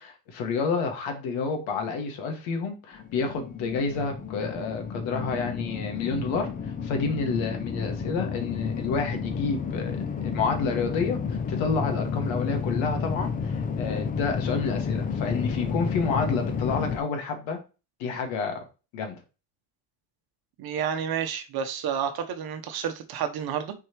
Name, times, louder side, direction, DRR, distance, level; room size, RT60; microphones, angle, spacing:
voice 1, 0.0-6.5 6.8-17.6 18.0-18.6 18.9-19.2, left 4 dB, 65° left, 2.0 m, -29 dB
sound 1, 3.0-17.0, left 6 dB, 20° left, 0.4 m, -31 dB
voice 2, 20.6-23.7, right 8 dB, 50° right, 1.1 m, -30 dB
6.4 x 4.8 x 3.1 m
cardioid pair, 135°, 49 cm